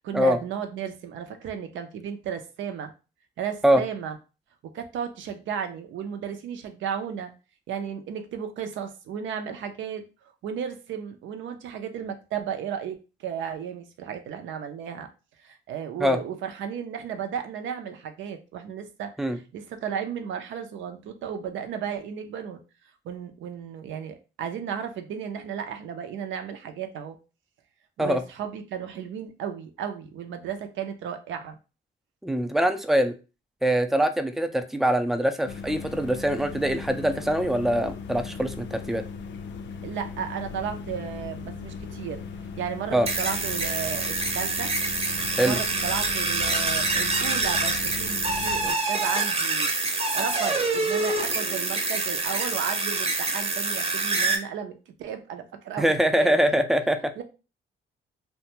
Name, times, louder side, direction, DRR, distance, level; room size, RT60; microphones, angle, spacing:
voice 1, 0.0-2.9 3.4-4.2 4.7-7.3 7.7-10.0 10.4-15.1 15.4-22.6 23.0-27.2 28.0-31.6 39.8-42.2 42.6-44.7 45.4-49.7 50.0-55.9 56.2-56.4 57.2-57.3, right 8 dB, 75° right, 6 dB, 0.5 m, -34 dB
voice 2, 32.2-33.1 33.6-39.0 42.9-43.1 45.4-45.6 55.8-57.0, equal, ahead, 8 dB, 0.3 m, -23 dB
sound 1, 35.5-48.7, left 5 dB, 65° left, 0.4 m, -38 dB
sound 2, 43.1-54.4, right 3 dB, 30° right, 0.7 m, -26 dB
2.5 x 2.2 x 2.9 m, 0.32 s
cardioid pair, 90°, 20 cm